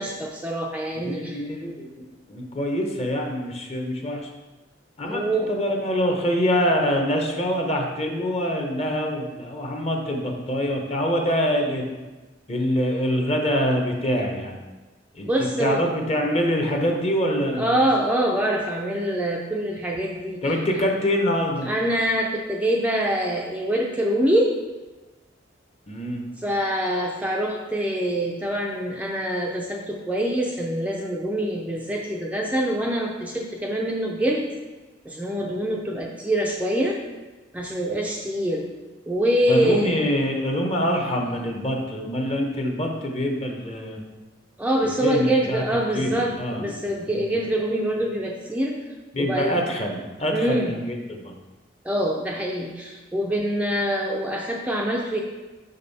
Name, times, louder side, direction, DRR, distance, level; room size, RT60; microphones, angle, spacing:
voice 1, 0.0-1.4 5.0-5.5 15.2-15.9 17.6-20.4 21.6-24.5 26.4-34.5 35.1-37.0 37.5-38.7 39.1-39.9 44.6-48.8 49.2-49.6 50.3-50.7 51.8-55.2, right 1 dB, 10° right, -1 dB, 0.5 m, -25 dB
voice 2, 0.9-4.3 5.0-11.8 12.5-14.6 15.1-17.7 20.4-21.7 25.9-26.3 39.5-44.0 44.8-45.6 45.9-46.7 47.0-47.3 49.1-51.3, equal, 35° left, 2 dB, 0.9 m, -25 dB
6.2 x 5.3 x 4.1 m, 1.2 s
head